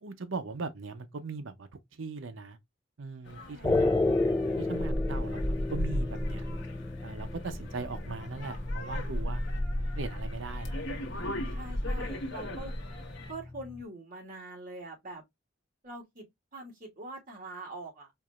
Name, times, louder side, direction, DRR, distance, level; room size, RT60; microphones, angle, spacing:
voice 1, 0.0-2.6 3.0-4.1 4.6-6.4 7.0-9.4 10.0-10.9 11.4-11.6, right 4 dB, 85° right, 0.7 m, -39 dB
sound 1, 3.2-13.3, left 1 dB, 65° left, 1.4 m, -35 dB
voice 2, 3.4-4.0 11.1-12.7 13.3-15.2 15.8-16.2 16.5-18.1, right 2 dB, 45° right, 2.4 m, -44 dB
sound 2, 3.6-13.8, left 2 dB, 15° left, 0.3 m, -34 dB
4.7 x 2.9 x 2.4 m
head